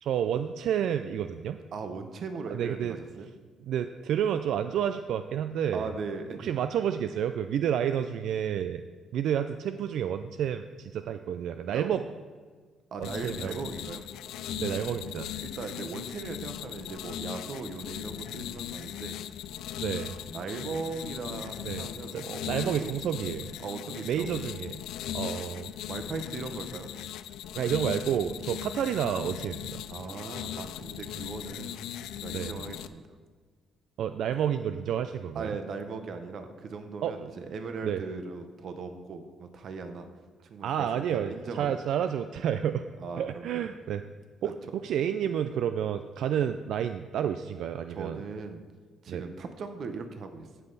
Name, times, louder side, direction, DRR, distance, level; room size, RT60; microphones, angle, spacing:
voice 1, 0.0-1.6 2.5-3.0 3.7-5.9 6.4-8.8 9.1-12.0 13.0-13.6 14.6-15.3 19.8-20.1 21.6-21.9 22.1-23.5 24.0-24.8 25.1-25.7 27.6-29.8 32.3-32.5 34.0-35.6 37.0-37.3 37.8-38.0 40.6-42.8 43.2-44.0 44.4-48.2 49.1-49.2, right 9 dB, 75° right, 9 dB, 0.3 m, -30 dB
voice 2, 1.7-3.3 5.7-6.6 11.7-11.9 12.9-14.0 15.4-19.2 20.3-22.9 23.6-24.3 25.9-26.9 28.5-28.6 29.9-31.8 32.2-33.0 35.3-40.1 40.5-41.8 43.0-43.7 47.9-48.6 49.0-50.5, right 4 dB, 60° right, 7 dB, 0.9 m, -38 dB
sound 1, 13.0-32.9, left 10 dB, 90° left, 0.4 m, -38 dB
15.5 x 5.6 x 4.0 m, 1.5 s
cardioid pair, 90°, 0 cm